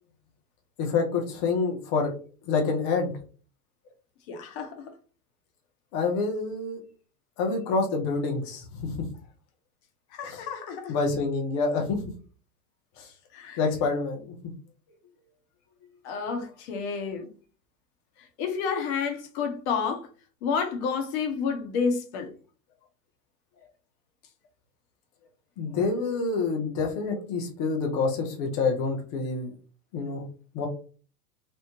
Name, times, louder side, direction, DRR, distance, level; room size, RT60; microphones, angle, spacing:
voice 1, 0.8-2.1 2.5-3.1 5.9-6.8 7.4-9.0 10.2-10.4 10.9-12.1 13.0-13.1 13.6-14.5 25.6-29.6 29.9-30.3 30.5-30.7, left 4 dB, 20° left, 0.3 m, -27 dB
voice 2, 4.3-4.9 10.1-11.0 13.3-13.6 16.0-17.3 18.4-20.1 20.4-22.3, left 5 dB, 45° left, 0.8 m, -30 dB
2.9 x 2.1 x 2.7 m
hypercardioid pair, 105°, 50 cm